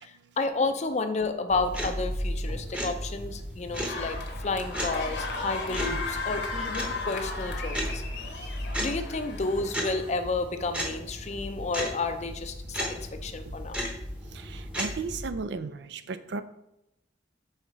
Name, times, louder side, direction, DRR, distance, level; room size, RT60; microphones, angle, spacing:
voice 1, 0.0-8.0 8.4-8.5 8.8-13.8, left 3 dB, 40° left, 8 dB, 0.5 m, -31 dB
sound 1, 1.5-15.3, equal, 5° right, 0.8 m, -35 dB
sound 2, 3.9-10.1, left 3 dB, 65° left, 1.1 m, -36 dB
voice 2, 14.3-16.4, right 4 dB, 70° right, 11 dB, 0.4 m, -35 dB
5.6 x 3.9 x 4.6 m, 0.85 s
head